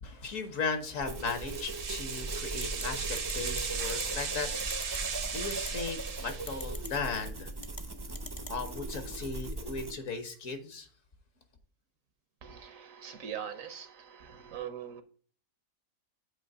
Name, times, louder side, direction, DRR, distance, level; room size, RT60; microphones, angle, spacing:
voice 1, 0.0-7.5 8.5-10.9, left 4 dB, 60° left, 8 dB, 1.5 m, -37 dB
sound 1, 1.0-9.9, right 2 dB, 25° right, 0.5 m, -39 dB
sound 2, 1.2-6.8, right 5 dB, 45° right, 0.8 m, -37 dB
sound 3, 2.6-2.8 3.2-3.6 3.9-4.0 4.6-5.0 5.5-5.7 6.5-6.9 7.6-7.8 8.2-8.6, left 2 dB, 30° left, 0.4 m, -42 dB
voice 2, 12.4-15.0, right 9 dB, 70° right, 10 dB, 1.3 m, -42 dB
7.8 x 3.1 x 5.4 m, 0.43 s
omnidirectional pair, 1.5 m